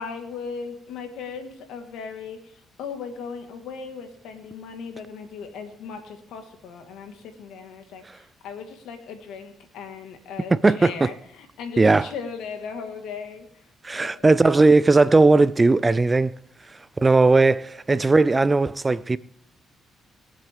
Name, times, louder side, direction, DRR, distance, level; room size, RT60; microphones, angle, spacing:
voice 1, 0.0-2.4 2.8-13.5 14.0-14.3, left 5 dB, 90° left, 1.7 m, -37 dB
voice 2, 10.5-11.1 11.8-12.1 13.8-16.4 17.0-19.2, right 3 dB, 20° right, 0.4 m, -18 dB
21.0 x 7.5 x 3.6 m
cardioid pair, 90°, 0 cm